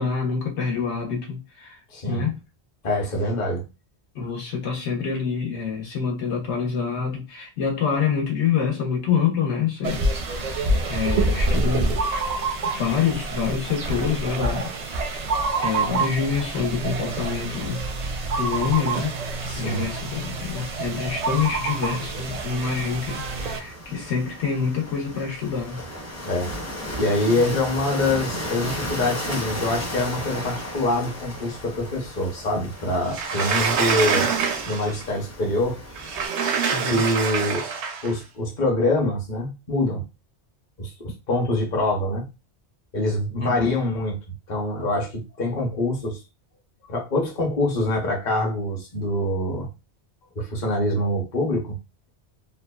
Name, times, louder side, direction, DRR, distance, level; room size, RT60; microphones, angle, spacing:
voice 1, 0.0-1.8 2.1-2.4 4.1-10.0 10.3-10.5 10.9-12.0 12.7-14.7 15.6-17.8 18.4-19.1 19.6-25.8 36.7-37.0 43.4-43.7, left 6 dB, 80° left, 1.2 m, -26 dB
voice 2, 1.9-2.3 2.8-3.6 19.5-19.8 26.3-26.5 27.0-34.3 34.6-35.8 36.8-37.7 38.0-40.0 40.8-42.3 42.9-44.2 44.5-46.2 46.9-49.7 50.4-51.7, left 1 dB, 45° left, 1.0 m, -25 dB
sound 1, 9.8-23.6, right 2 dB, 55° right, 0.5 m, -27 dB
sound 2, 19.0-36.3, equal, 20° left, 0.5 m, -36 dB
Sliding door, 33.1-35.0 36.0-38.1, right 6 dB, 90° right, 0.9 m, -25 dB
2.9 x 2.1 x 2.2 m
omnidirectional pair, 1.1 m